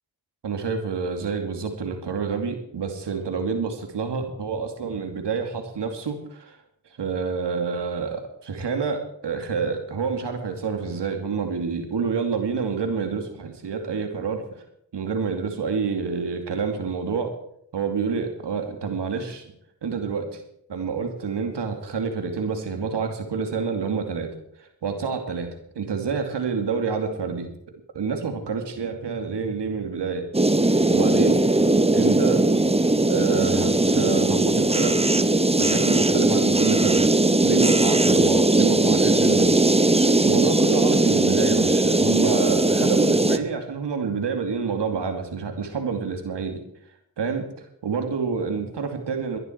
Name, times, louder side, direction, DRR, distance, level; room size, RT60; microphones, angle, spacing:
voice 1, 0.4-6.6 7.0-14.6 14.9-17.3 17.7-19.4 19.8-20.4 20.7-24.3 24.8-25.5 25.8-27.5 27.9-30.2 30.9-31.4 31.9-32.4 33.1-35.0 35.6-37.0 37.4-39.6 39.9-46.6 47.2-47.4 47.8-49.4, right 5 dB, 85° right, 5 dB, 2.7 m, -28 dB
sound 1, 30.3-43.4, right 2 dB, 15° right, 1.1 m, -19 dB
21.0 x 11.0 x 4.6 m, 0.74 s
cardioid pair, 45°, 41 cm